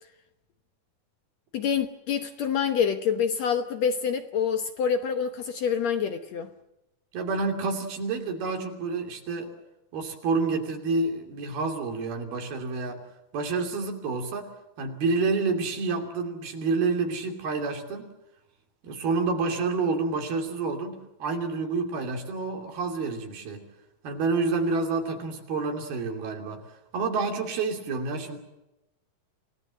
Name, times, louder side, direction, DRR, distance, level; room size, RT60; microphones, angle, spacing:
voice 1, 1.5-6.5, left 7 dB, 65° left, 1.9 m, -26 dB
voice 2, 7.1-9.5 9.9-13.0 13.3-14.5 14.8-18.1 18.8-23.6 24.0-26.6 26.9-28.4, right 4 dB, 90° right, 4.9 m, -28 dB
28.5 x 17.5 x 7.5 m
omnidirectional pair, 4.2 m